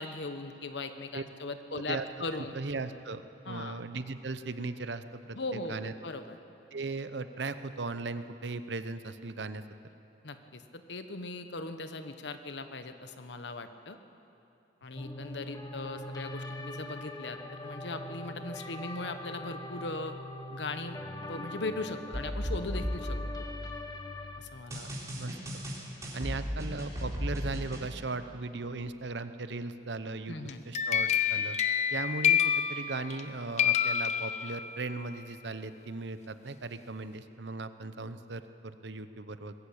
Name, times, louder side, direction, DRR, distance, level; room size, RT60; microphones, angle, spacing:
voice 1, 0.0-2.5 3.5-3.8 5.3-6.4 10.2-14.0 14.8-20.1 20.5-23.5 24.4-24.9 30.3-30.6, left 2 dB, 75° left, 9 dB, 1.1 m, -39 dB
voice 2, 1.7-2.1 2.3-5.9 6.7-9.6 25.2-25.6 26.1-30.4 30.7-31.6 31.9-39.5, right 3 dB, 75° right, 11 dB, 0.8 m, -38 dB
sound 1, 15.0-24.4, left 1 dB, 20° left, 1.3 m, -42 dB
sound 2, 22.1-24.0 24.7-27.8, equal, 20° right, 3.6 m, -36 dB
sound 3, 30.5-33.3 33.6-34.9, left 9 dB, 40° left, 0.8 m, -28 dB
20.5 x 15.0 x 8.7 m, 2.9 s
head